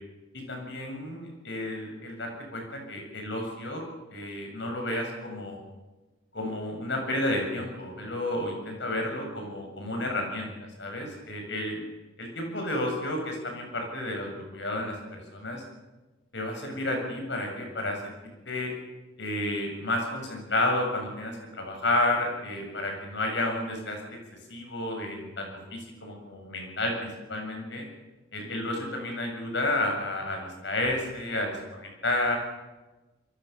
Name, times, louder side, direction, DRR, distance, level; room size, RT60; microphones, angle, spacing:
voice 1, 0.3-3.8 4.1-5.6 6.3-10.5 10.8-11.8 12.2-15.6 16.3-18.1 18.5-18.7 19.2-24.0 24.5-27.8 28.3-31.5 32.0-32.4, left 1 dB, 60° left, 2 dB, 7.8 m, -31 dB
26.0 x 22.5 x 7.2 m, 1.1 s
head